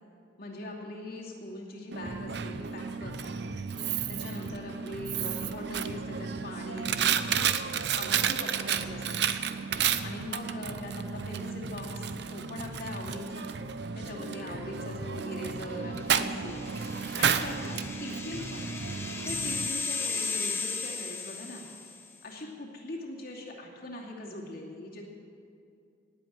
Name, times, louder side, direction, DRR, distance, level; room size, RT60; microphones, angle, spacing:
voice 1, 0.4-3.5 4.1-7.5 7.9-9.4 10.0-13.5 13.9-16.7 17.2-18.7 19.2-21.6 22.2-25.0, left 1 dB, 50° left, -2 dB, 2.6 m, -41 dB
Coin (dropping), 1.9-19.7, right 7 dB, 60° right, 0.7 m, -32 dB
sound 1, 16.2-22.1, left 4 dB, 15° left, 1.3 m, -36 dB
19.0 x 8.2 x 9.3 m, 2.4 s
head